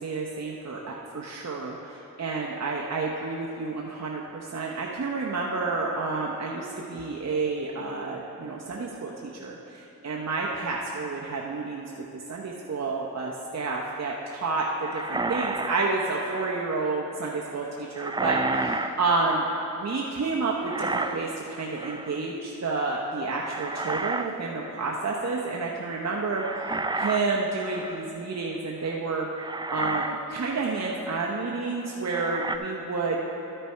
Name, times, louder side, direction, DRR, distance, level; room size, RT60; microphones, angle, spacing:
voice 1, 0.0-11.9 12.1-19.4 19.8-26.4 26.9-29.3 29.7-33.2, right 3 dB, 50° right, -2 dB, 0.8 m, -30 dB
sound 1, 14.8-16.8 18.0-19.7 20.6-21.4 21.8-22.3 23.4-24.3 24.6-24.9 26.3-28.1 28.9-29.0 29.4-30.3 30.7-30.8 32.1-32.6, right 3 dB, 15° right, 0.3 m, -31 dB
12.5 x 6.7 x 4.4 m, 2.9 s
cardioid pair, 55°, 33 cm